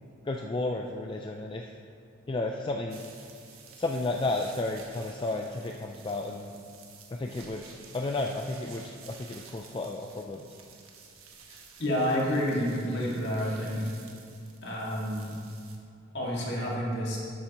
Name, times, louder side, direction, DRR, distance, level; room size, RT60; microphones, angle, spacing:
voice 1, 0.2-1.7 2.3-3.0 3.8-6.5 7.1-10.4, left 2 dB, 25° left, 2 dB, 0.3 m, -32 dB
sound 1, 2.9-15.8, right 5 dB, 85° right, 1.2 m, -52 dB
voice 2, 11.5-13.9 14.6-15.3 16.1-17.2, equal, 55° left, -4 dB, 2.1 m, -29 dB
12.0 x 8.6 x 3.0 m, 2.5 s
head